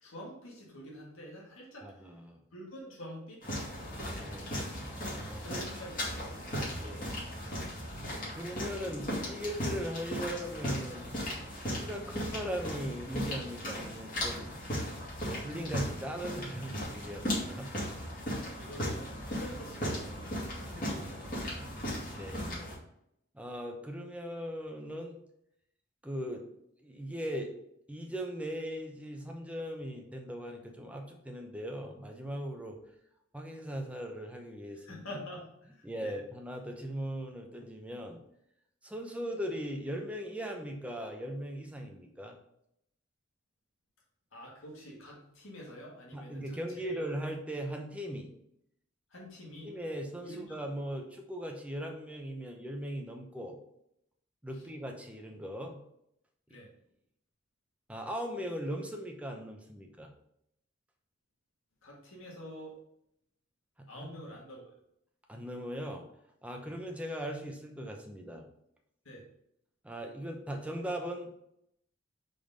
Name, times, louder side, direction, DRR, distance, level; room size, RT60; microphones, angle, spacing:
voice 1, 0.0-1.8 2.5-3.4 5.4-6.5 18.3-20.0 20.7-21.5 34.8-36.1 44.3-47.0 49.1-49.7 50.2-50.6 54.5-54.6 56.5-56.7 61.8-62.7 63.9-64.7 66.7-66.8 69.1-69.2, equal, 80° left, -3 dB, 1.9 m, -47 dB
voice 2, 1.8-2.4 4.1-5.5 6.8-7.1 8.3-11.1 11.7-14.5 15.2-17.7 21.0-21.6 22.1-22.7 23.3-25.2 26.0-26.5 26.8-27.5 27.9-32.8 33.3-35.1 35.8-38.2 38.8-42.4 46.1-48.3 49.6-53.6 54.4-55.8 56.5-56.6 57.9-60.1 63.8-64.2 65.3-66.0 66.4-68.5 69.8-71.3, equal, 5° right, 2 dB, 0.8 m, -39 dB
sound 1, 3.4-22.7, equal, 40° left, 2.5 m, -37 dB
5.2 x 3.9 x 5.2 m, 0.75 s
head